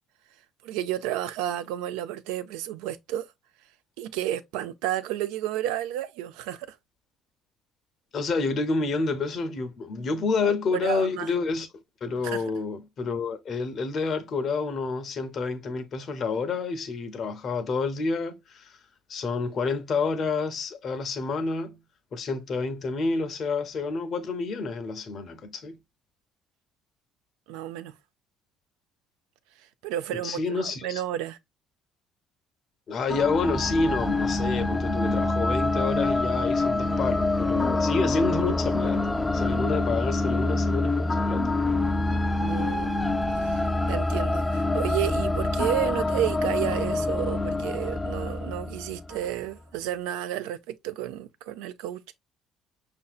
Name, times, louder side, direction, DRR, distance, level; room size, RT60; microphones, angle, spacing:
voice 1, 0.6-3.3 4.0-6.8 10.4-11.3 12.2-12.4 27.5-27.9 29.8-31.4 42.4-43.0 43.3-52.0, right 12 dB, 80° right, 0.3 m, -31 dB
voice 2, 8.1-11.7 12.0-18.8 19.1-21.8 22.1-25.8 30.2-31.0 32.9-41.5, left 4 dB, 50° left, 0.7 m, -29 dB
sound 1, 33.1-49.3, left 2 dB, 20° left, 0.4 m, -26 dB
5.4 x 2.6 x 2.3 m
hypercardioid pair, 60°, 0 cm